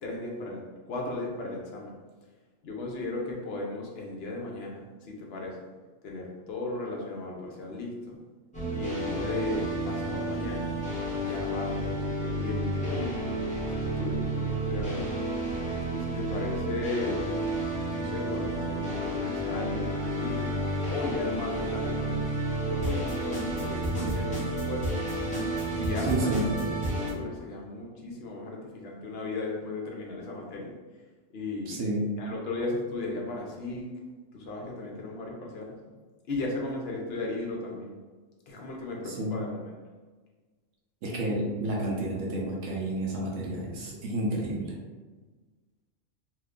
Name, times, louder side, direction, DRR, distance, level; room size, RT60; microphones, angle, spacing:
voice 1, 0.0-1.9 2.6-5.6 6.0-8.2 8.7-10.7 11.2-13.2 13.7-15.2 15.9-17.3 17.9-20.5 20.9-24.9 25.7-26.5 26.9-30.7 31.3-31.8 32.2-33.9 34.3-35.8 36.3-37.9 38.5-39.6, left 2 dB, 60° left, -1 dB, 0.8 m, -36 dB
sound 1, 8.5-27.1, right 1 dB, 5° left, 0.8 m, -31 dB
voice 2, 26.0-26.5 31.7-32.1 39.0-39.4 41.0-44.7, right 1 dB, 75° right, -2 dB, 1.0 m, -30 dB
2.8 x 2.2 x 3.6 m, 1.4 s
omnidirectional pair, 1.3 m